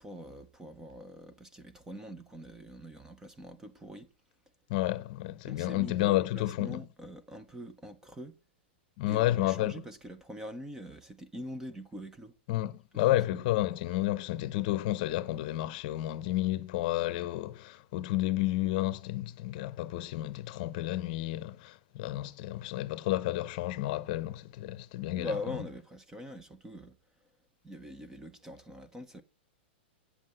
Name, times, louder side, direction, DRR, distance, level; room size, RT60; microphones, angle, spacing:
voice 1, 0.0-4.1 5.4-8.4 9.1-12.3 13.3-13.4 25.2-27.0 27.6-29.2, left 1 dB, 10° right, 0.9 m, -43 dB
voice 2, 4.7-6.8 9.0-9.8 12.5-25.4, left 15 dB, 45° left, 0.8 m, -31 dB
8.6 x 7.5 x 7.7 m
hypercardioid pair, 145°, 6 cm